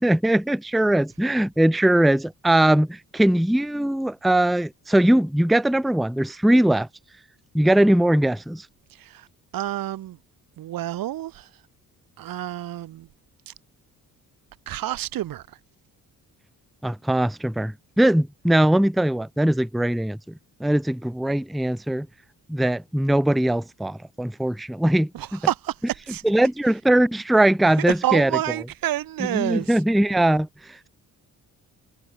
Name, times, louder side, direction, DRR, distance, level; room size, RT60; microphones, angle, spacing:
voice 1, 0.0-6.9 7.5-8.7 16.8-20.2 20.6-22.1 22.5-25.4 26.2-28.3 29.3-30.9, right 1 dB, ahead, 0.5 m, -21 dB
voice 2, 8.9-9.3 9.5-10.2 10.6-11.5 12.2-13.1 13.5-13.6 14.7-15.6 25.1-26.2 28.0-29.8, right 13 dB, 85° right, 2.3 m, -28 dB
cardioid pair, 145°, 34 cm